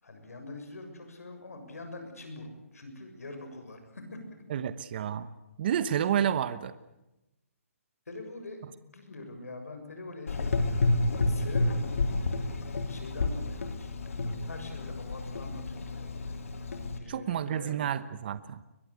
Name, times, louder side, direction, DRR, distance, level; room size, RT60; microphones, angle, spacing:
voice 1, 0.0-4.4 8.1-10.8 11.3-12.0 12.3-16.3 17.0-17.8, left 2 dB, 85° left, 6 dB, 7.2 m, -44 dB
voice 2, 4.5-5.3 5.6-6.7 17.1-18.6, right 9 dB, 40° right, 14 dB, 1.1 m, -30 dB
Gurgling / Engine, 10.3-17.0, left 2 dB, 70° left, 3.3 m, -30 dB
22.5 x 21.5 x 8.4 m, 0.97 s
hypercardioid pair, 155°, 8 cm